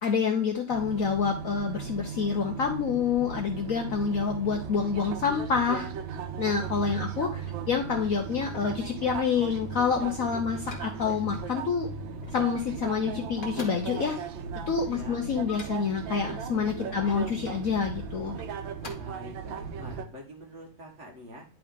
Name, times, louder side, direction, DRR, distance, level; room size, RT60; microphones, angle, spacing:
voice 1, 0.0-5.9 6.4-11.9 12.3-14.2 14.7-18.4, left 6 dB, 60° left, 3 dB, 0.9 m, -27 dB
sound 1, 0.7-20.1, right 6 dB, 75° right, 1.4 m, -37 dB
sound 2, 7.4-8.9 9.5-11.0 11.3-11.5 11.9-13.0 13.3-16.0 16.7-17.4 18.2-18.9, left 3 dB, 30° left, 1.2 m, -48 dB
voice 2, 14.9-15.2 16.8-17.3 19.0-21.4, equal, 45° right, 2 dB, 1.2 m, -45 dB
10.0 x 3.7 x 3.5 m, 0.37 s
omnidirectional pair, 2.2 m